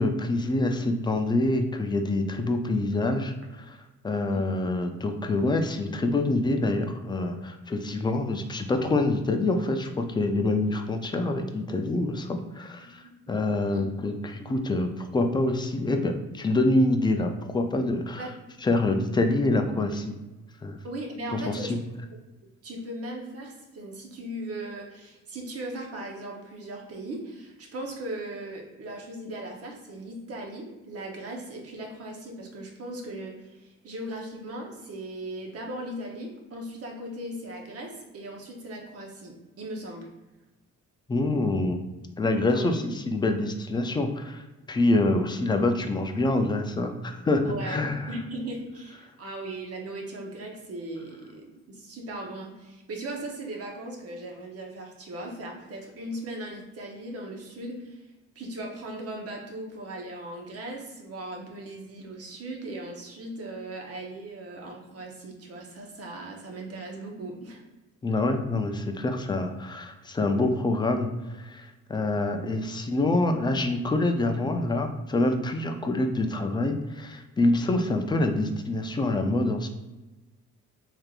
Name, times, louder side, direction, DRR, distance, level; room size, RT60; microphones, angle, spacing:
voice 1, 0.0-3.8 4.0-13.0 13.3-18.3 18.6-20.1 20.6-20.8 21.3-21.8 41.1-41.8 42.2-48.1 68.0-79.7, left 2 dB, 15° left, 5 dB, 0.3 m, -26 dB
voice 2, 12.8-13.4 13.7-14.7 18.2-18.3 20.8-21.7 22.6-40.1 42.5-42.7 47.4-47.8 48.1-58.1 58.3-67.6, right 1 dB, 50° right, 1 dB, 0.9 m, -38 dB
3.3 x 3.3 x 2.4 m, 1.1 s
cardioid pair, 100°, 31 cm